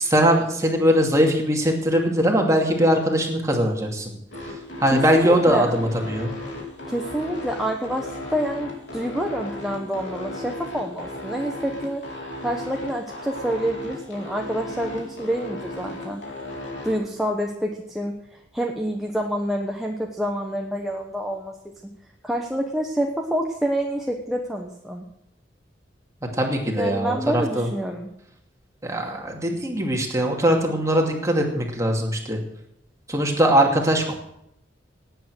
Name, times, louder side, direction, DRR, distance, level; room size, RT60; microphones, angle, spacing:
voice 1, 0.0-4.1 4.8-6.3 26.3-27.7 28.8-32.4 33.1-34.2, equal, 15° right, 1 dB, 2.5 m, -21 dB
sound 1, 4.3-16.9, left 1 dB, 80° left, 4.0 m, -35 dB
voice 2, 4.9-5.7 6.9-12.0 12.4-16.2 16.8-21.5 22.2-25.0 26.7-28.1, equal, ahead, 0 dB, 1.1 m, -27 dB
18.0 x 9.1 x 6.3 m, 0.77 s
head